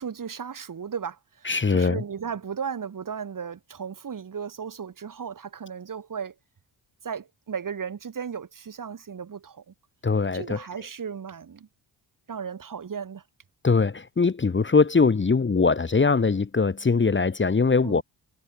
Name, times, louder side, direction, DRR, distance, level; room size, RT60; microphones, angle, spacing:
voice 1, 0.0-6.3 7.0-9.7 10.3-11.7 12.3-13.2 17.8-18.0, right 7 dB, 45° right, 2.5 m, -35 dB
voice 2, 1.4-2.0 10.0-10.6 13.6-18.0, left 4 dB, 25° left, 1.4 m, -21 dB
cardioid pair, 80°, 45 cm